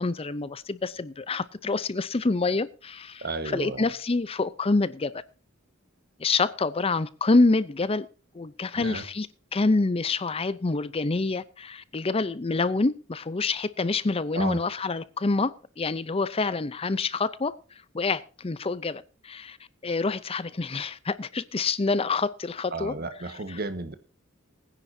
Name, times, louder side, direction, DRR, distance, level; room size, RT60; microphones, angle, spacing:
voice 1, 0.0-5.2 6.2-8.1 8.3-17.6 17.9-19.6 19.8-22.9 23.2-23.6, left 3 dB, 30° left, 0.6 m, -27 dB
voice 2, 3.2-3.9 8.7-9.0 14.3-14.6 22.7-23.9, right 3 dB, 50° right, 1.4 m, -33 dB
20.0 x 10.0 x 2.7 m
head